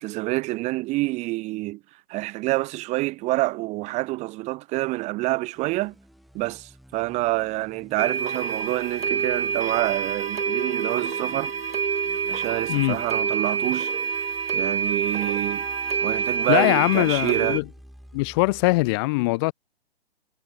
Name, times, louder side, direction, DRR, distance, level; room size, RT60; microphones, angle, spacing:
voice 1, 0.0-1.8 2.1-5.9 6.3-11.5 12.3-13.9 14.5-15.6 16.0-17.6, right 21 dB, 20° right, 2.4 m, -27 dB
sound 1, 5.5-18.9, equal, ahead, 5.8 m, -52 dB
sound 2, 8.0-17.6, right 6 dB, 65° right, 1.3 m, -27 dB
voice 2, 12.7-13.0 16.5-17.6 18.1-19.5, left 25 dB, 25° left, 1.0 m, -22 dB
figure-of-eight pair, 125°, 32 cm